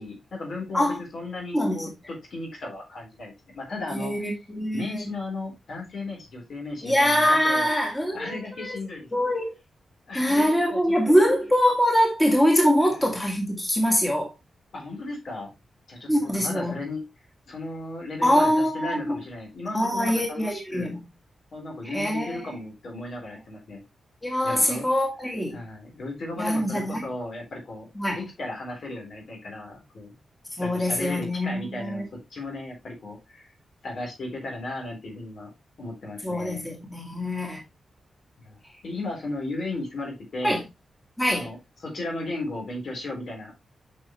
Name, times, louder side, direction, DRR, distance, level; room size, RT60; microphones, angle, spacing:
voice 1, 0.0-4.3 4.7-7.7 8.1-9.1 10.1-11.2 12.8-13.0 14.7-15.5 15.9-17.0 17.5-21.0 21.5-23.8 24.4-24.9 25.5-30.1 30.6-33.5 33.8-35.5 35.8-36.6 38.4-40.6 41.3-43.5, left 2 dB, 60° left, 3.8 m, -35 dB
voice 2, 3.9-5.1 6.8-8.8 9.1-9.5 10.1-14.3 16.1-16.8 18.2-19.2 19.7-21.0 21.8-22.4 24.2-25.6 26.4-27.1 28.0-28.2 30.6-32.1 36.2-37.6 40.4-40.6 41.2-41.5, equal, 10° left, 1.9 m, -23 dB
8.7 x 5.7 x 3.1 m
wide cardioid pair, 135°, 0 cm